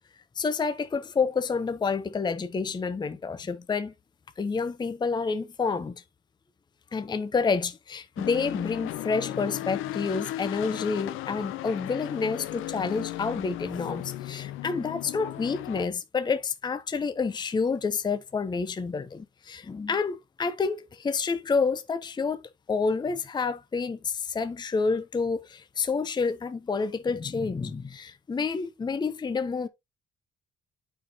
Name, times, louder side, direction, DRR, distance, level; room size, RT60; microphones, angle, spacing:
voice 1, 0.4-3.9 4.4-6.0 6.9-22.4 22.7-29.7, left 4 dB, 20° left, 0.5 m, -29 dB
sound 1, 8.2-15.8, left 14 dB, 90° left, 0.5 m, -36 dB
8.7 x 4.3 x 2.7 m
cardioid pair, 90°, 20 cm